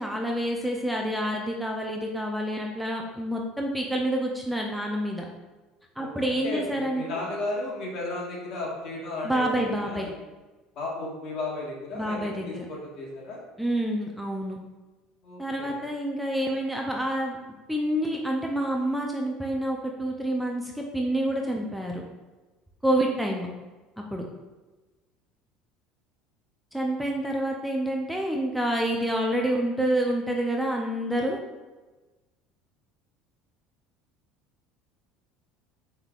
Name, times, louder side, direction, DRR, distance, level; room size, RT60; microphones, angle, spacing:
voice 1, 0.0-5.2 6.0-7.2 9.2-10.1 12.0-12.6 13.6-14.6 15.4-17.4 17.7-22.0 22.8-23.5 24.1-24.3 26.7-31.4, right 1 dB, 5° right, 0 dB, 0.5 m, -28 dB
voice 2, 6.0-10.1 10.7-13.4 15.2-15.9, left 2 dB, 55° left, -3 dB, 1.4 m, -34 dB
5.4 x 3.4 x 2.4 m, 1.2 s
supercardioid pair, 120°, 0 cm